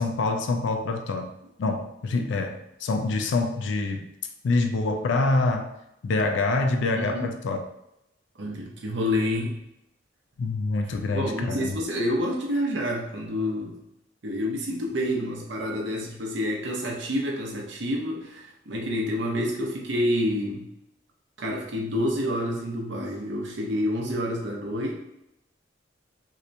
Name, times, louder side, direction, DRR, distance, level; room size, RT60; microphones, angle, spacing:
voice 1, 0.0-1.3 1.6-4.1 4.4-5.8 6.0-7.7 10.4-11.8, left 3 dB, 80° left, 5 dB, 0.4 m, -26 dB
voice 2, 6.9-7.3 8.4-9.6 11.1-13.8 14.2-20.7 21.4-24.9, equal, 70° right, 0 dB, 0.7 m, -28 dB
3.2 x 2.8 x 2.6 m, 0.83 s
head